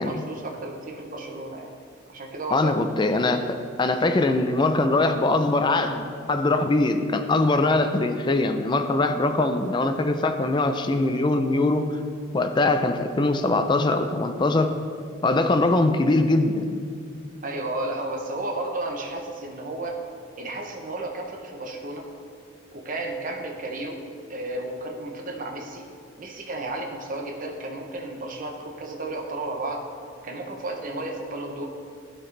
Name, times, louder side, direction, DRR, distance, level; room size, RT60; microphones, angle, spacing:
voice 1, 0.0-1.7 2.1-2.8 17.4-20.0 20.4-22.1 22.7-24.0 24.3-25.8 26.2-29.9 30.2-31.7, right 2 dB, 40° right, 1 dB, 0.8 m, -33 dB
voice 2, 2.5-3.4 3.8-11.9 12.3-14.7 15.2-16.8, left 2 dB, 25° left, 7 dB, 0.4 m, -22 dB
12.0 x 5.8 x 3.3 m, 2.3 s
head